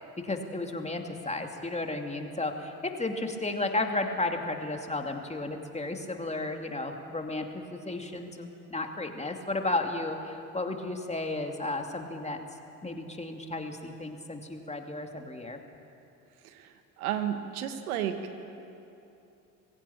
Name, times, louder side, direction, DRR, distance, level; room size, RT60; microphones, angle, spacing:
voice 1, 0.2-12.4 12.8-15.6, left 2 dB, 15° left, 3 dB, 2.5 m, -33 dB
voice 2, 16.4-18.2, right 10 dB, 90° right, 8 dB, 1.5 m, -32 dB
21.0 x 16.0 x 8.7 m, 2.8 s
hypercardioid pair, 65°, 43 cm